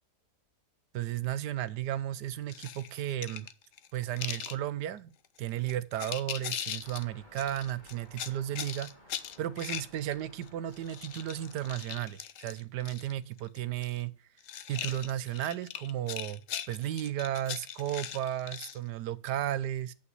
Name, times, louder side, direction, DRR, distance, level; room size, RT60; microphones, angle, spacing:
voice 1, 0.9-3.5 3.9-5.1 5.4-8.9 9.4-14.1 14.7-16.4 16.7-19.9, right 12 dB, 85° right, 1.3 m, -34 dB
sound 1, 2.5-4.6 5.2-5.4 5.7-7.0 7.4-10.5 10.7-13.1 13.4-14.0 14.4-18.8, left 10 dB, 60° left, 1.0 m, -40 dB
sound 2, 6.8-11.8, equal, 25° left, 3.4 m, -57 dB
8.6 x 6.1 x 8.1 m
omnidirectional pair, 1.7 m